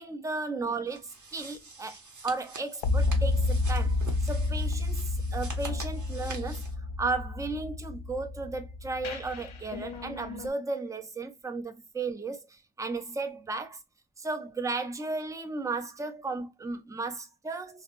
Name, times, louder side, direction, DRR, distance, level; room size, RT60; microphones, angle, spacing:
voice 1, 0.0-2.0 2.2-5.0 5.3-6.6 7.0-13.8 14.2-17.8, right 3 dB, 5° right, 0.4 m, -34 dB
sound 1, 0.9-6.7, right 3 dB, 40° right, 0.7 m, -46 dB
sound 2, 2.8-10.5, left 2 dB, 70° left, 0.6 m, -30 dB
2.5 x 2.0 x 3.0 m
wide cardioid pair, 70°, 49 cm